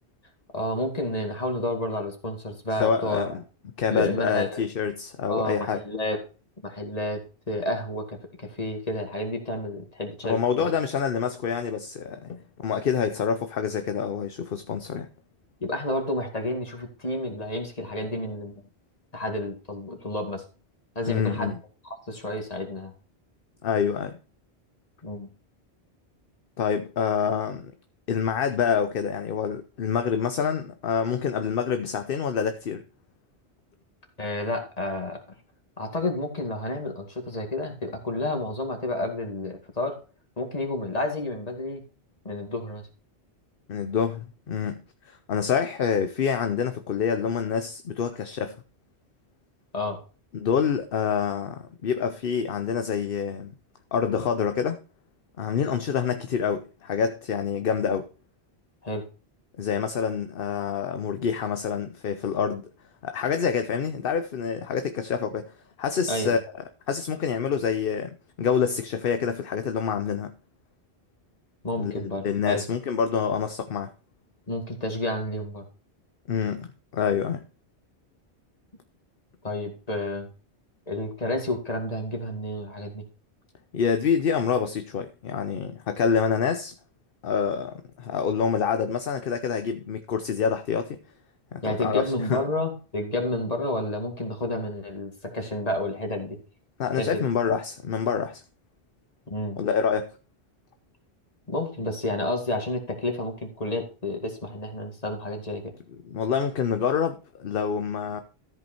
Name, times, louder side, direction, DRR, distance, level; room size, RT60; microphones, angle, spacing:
voice 1, 0.5-3.4 3.9-4.6 5.3-6.2 6.6-7.2 7.5-10.7 15.6-18.6 19.1-20.4 21.0-21.5 22.1-22.9 25.0-25.3 34.2-35.2 35.8-40.0 40.4-41.8 42.2-42.8 49.7-50.0 58.8-59.0 66.1-66.4 71.6-72.6 74.5-75.7 79.4-80.3 80.9-83.0 91.6-96.4 97.0-97.2 99.3-99.6 101.5-105.7, left 1 dB, 35° left, 2.3 m, -30 dB
voice 2, 2.8-3.4 3.8-5.8 10.3-15.1 21.1-21.6 23.6-24.2 26.6-27.7 28.1-32.8 43.7-44.8 45.1-48.6 50.3-53.5 53.9-54.8 55.4-58.1 59.6-62.7 63.0-66.4 66.9-68.1 68.4-70.3 71.8-73.9 76.3-77.4 83.7-86.7 87.2-91.0 91.5-92.4 96.8-98.4 99.6-100.1 106.0-108.2, left 7 dB, 60° left, 0.9 m, -27 dB
13.5 x 5.4 x 4.4 m
omnidirectional pair, 1.1 m